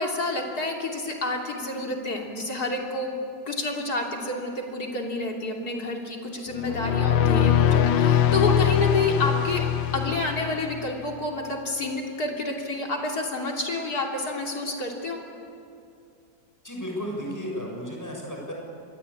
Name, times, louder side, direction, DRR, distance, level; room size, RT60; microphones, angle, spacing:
voice 1, 0.0-3.1 3.5-9.6 9.9-15.2, left 2 dB, 50° left, 1 dB, 3.6 m, -29 dB
sound 1, 6.5-10.9, left 10 dB, 80° left, 1.6 m, -22 dB
voice 2, 16.6-18.5, equal, 10° left, -1 dB, 6.7 m, -34 dB
27.5 x 23.0 x 8.6 m, 2.5 s
omnidirectional pair, 2.1 m